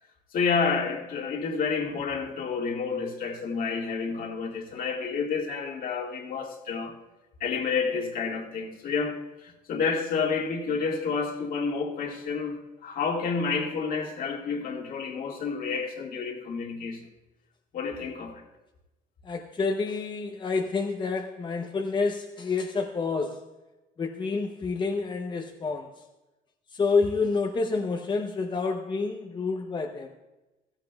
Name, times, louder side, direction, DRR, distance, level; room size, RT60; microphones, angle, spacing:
voice 1, 0.3-6.9 7.4-17.1 17.7-18.4, left 5 dB, 55° left, 1.9 m, -30 dB
voice 2, 19.2-23.5 24.0-25.9 26.7-30.1, left 4 dB, 30° left, 0.7 m, -28 dB
15.5 x 15.0 x 2.3 m
cardioid pair, 110°, 17 cm